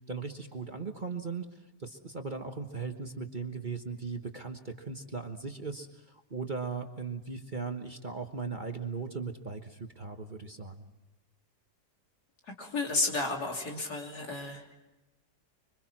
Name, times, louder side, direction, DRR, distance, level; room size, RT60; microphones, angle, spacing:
voice 1, 0.1-1.5 1.8-10.9, right 5 dB, 30° right, 4 dB, 1.3 m, -38 dB
voice 2, 12.5-14.8, left 2 dB, 70° left, 1 dB, 3.6 m, -32 dB
25.5 x 25.5 x 6.1 m, 1.0 s
omnidirectional pair, 1.8 m